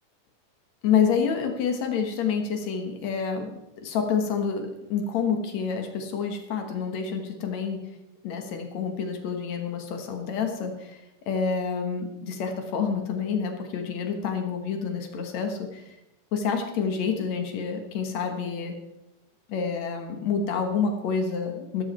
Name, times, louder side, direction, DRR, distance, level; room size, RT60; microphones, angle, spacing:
voice 1, 0.8-3.5 3.8-7.8 8.2-15.9 16.3-18.7 19.5-21.8, left 6 dB, 55° left, 5 dB, 2.2 m, -28 dB
14.0 x 13.0 x 4.4 m, 0.90 s
omnidirectional pair, 4.7 m